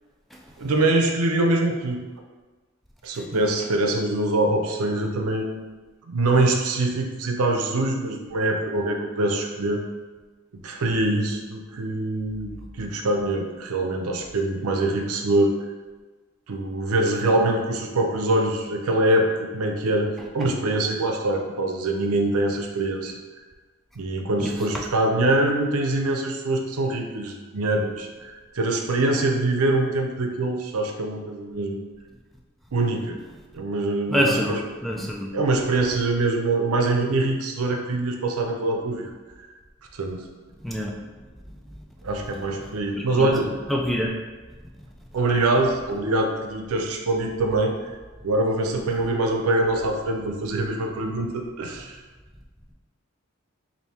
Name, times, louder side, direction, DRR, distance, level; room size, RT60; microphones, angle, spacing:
voice 1, 0.6-2.0 3.0-5.6 6.1-9.8 10.6-15.5 16.5-20.1 20.3-23.1 24.0-31.8 32.7-33.2 33.5-34.6 35.3-39.1 39.9-40.2 42.0-43.5 45.1-48.0 48.2-52.0, right 2 dB, 90° right, 2 dB, 0.6 m, -24 dB
voice 2, 34.1-35.4 40.6-41.0 43.1-43.3 43.7-44.1, equal, ahead, -1 dB, 0.3 m, -26 dB
3.4 x 2.6 x 4.1 m, 1.3 s
head